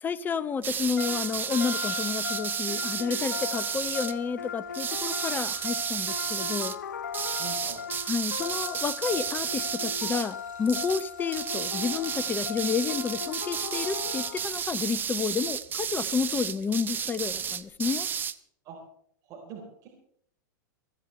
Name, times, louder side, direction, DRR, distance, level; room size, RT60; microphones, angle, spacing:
voice 1, 0.0-6.7 8.1-18.1, left 6 dB, 20° left, 18 dB, 0.7 m, -30 dB
Frying (food), 0.5-17.7, right 2 dB, 90° right, 6.4 m, -59 dB
sound 1, 0.6-4.1 4.7-6.8 7.1-10.3 10.7-11.1 11.3-18.4, right 8 dB, 20° right, 0.7 m, -32 dB
sound 2, 1.0-14.8, left 7 dB, 70° left, 0.5 m, -38 dB
voice 2, 7.4-7.8 18.6-18.8 19.2-19.9, right 7 dB, 35° right, 0 dB, 3.8 m, -43 dB
23.5 x 15.0 x 3.3 m, 0.66 s
figure-of-eight pair, 90°, 10 cm